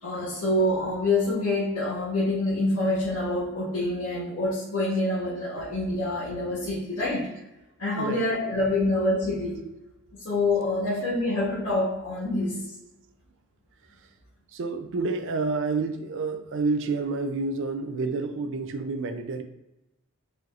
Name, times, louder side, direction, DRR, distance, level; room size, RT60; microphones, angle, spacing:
voice 1, 0.0-7.3 7.8-9.6 10.2-12.6, left 2 dB, 85° left, -10 dB, 1.4 m, -26 dB
voice 2, 14.5-19.4, right 3 dB, 60° right, 7 dB, 0.4 m, -29 dB
5.0 x 2.9 x 2.4 m, 0.94 s
head